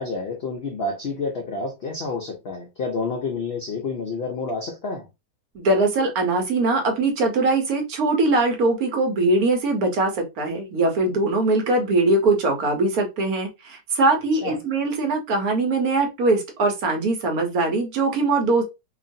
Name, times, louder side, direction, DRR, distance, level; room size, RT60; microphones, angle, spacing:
voice 1, 0.0-5.1 14.4-14.6, left 3 dB, 85° left, 0.5 m, -29 dB
voice 2, 5.5-18.7, right 2 dB, 65° right, 1.2 m, -21 dB
2.9 x 2.4 x 2.6 m
omnidirectional pair, 1.8 m